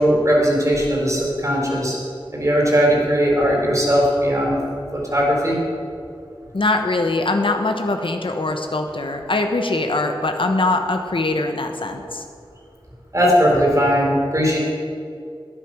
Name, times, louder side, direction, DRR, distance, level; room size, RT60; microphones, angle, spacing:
voice 1, 0.0-2.0 2.3-4.6 4.9-5.6 13.1-14.6, equal, 35° right, -2 dB, 3.9 m, -18 dB
voice 2, 6.5-12.2, left 2 dB, 70° left, 5 dB, 1.1 m, -22 dB
12.0 x 10.0 x 6.2 m, 2.4 s
wide cardioid pair, 60°, 9 cm